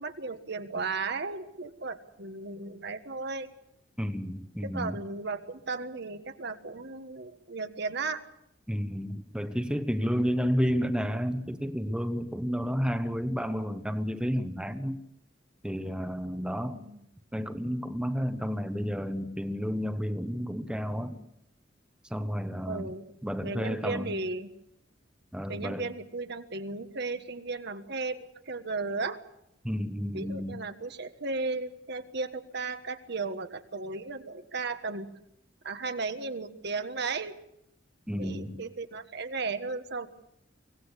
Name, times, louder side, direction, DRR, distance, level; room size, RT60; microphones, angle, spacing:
voice 1, 0.0-3.5 4.6-8.2 16.6-17.0 22.7-23.0 23.4-24.5 25.5-29.2 30.1-35.1 35.6-37.4 38.2-40.1, right 3 dB, 60° right, 8 dB, 1.5 m, -35 dB
voice 2, 4.0-5.0 8.7-15.0 15.6-16.8 17.3-21.2 22.1-22.9 23.2-24.1 25.3-25.8 29.6-30.5 38.1-38.6, equal, 5° right, 7 dB, 1.2 m, -31 dB
24.5 x 17.5 x 8.3 m, 0.77 s
head